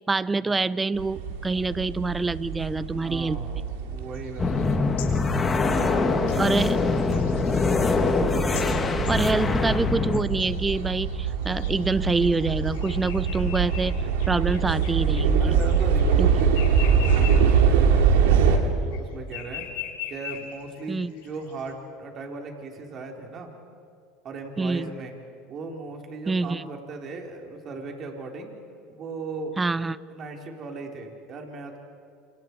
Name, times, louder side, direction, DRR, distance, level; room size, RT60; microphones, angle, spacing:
voice 1, 0.1-3.4 6.4-6.8 8.5-15.6 16.2-16.3 20.9-21.1 24.6-24.9 26.3-26.7 29.6-30.0, right 3 dB, 15° right, 19 dB, 0.7 m, -26 dB
sound 1, 1.0-18.6, right 6 dB, 80° right, 2.6 m, -24 dB
voice 2, 3.0-5.1 5.5-7.6 15.4-19.7 20.1-23.5 24.2-25.2 25.5-28.5 28.9-29.5 30.1-31.8, right 3 dB, 40° right, 2 dB, 4.2 m, -37 dB
sound 2, 4.1-9.8 10.1-17.6 17.9-19.0 19.2-21.7, left 10 dB, 80° left, 5.6 m, -42 dB
sound 3, 4.4-10.2, left 4 dB, 20° left, 2.5 m, -24 dB
28.5 x 28.5 x 4.7 m, 2.5 s
hypercardioid pair, 90°, 0 cm